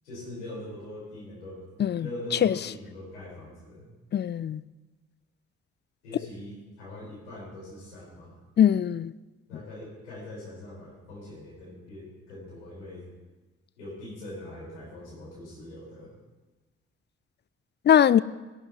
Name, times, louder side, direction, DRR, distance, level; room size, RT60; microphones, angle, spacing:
voice 1, 0.0-1.6 2.0-3.9 6.0-8.4 9.5-13.0 13.8-16.1, left 1 dB, 85° left, 4.7 m, -42 dB
voice 2, 4.1-4.6 8.6-9.1 17.9-18.2, left 9 dB, 30° left, 0.4 m, -21 dB
18.5 x 11.5 x 3.0 m
figure-of-eight pair, 40°, 34 cm